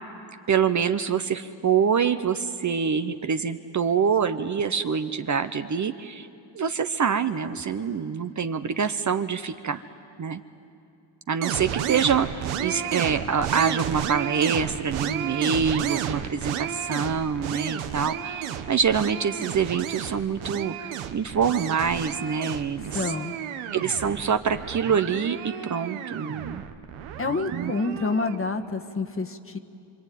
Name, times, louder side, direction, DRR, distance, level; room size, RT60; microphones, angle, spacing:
voice 1, 0.5-6.3 6.5-9.8 10.2-10.4 11.3-23.0 23.7-26.6 27.5-27.7, right 6 dB, 40° right, 9 dB, 0.9 m, -25 dB
sound 1, 11.4-28.4, right 9 dB, 90° right, 1.4 m, -32 dB
voice 2, 22.9-23.3 27.2-29.6, left 3 dB, 25° left, 6 dB, 1.5 m, -28 dB
26.0 x 24.5 x 9.4 m, 2.6 s
cardioid pair, 95°, 47 cm